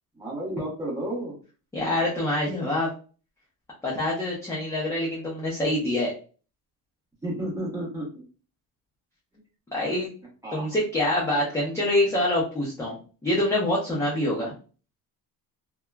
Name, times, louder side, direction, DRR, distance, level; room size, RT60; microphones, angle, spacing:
voice 1, 0.1-1.3 7.2-8.2 10.4-10.7 13.9-14.3, right 1 dB, 10° right, -5 dB, 1.1 m, -32 dB
voice 2, 1.7-2.9 3.8-6.1 9.7-10.1 10.5-13.0 13.2-14.5, left 1 dB, 10° left, -6 dB, 0.6 m, -25 dB
2.7 x 2.2 x 2.2 m, 0.37 s
cardioid pair, 155°, 37 cm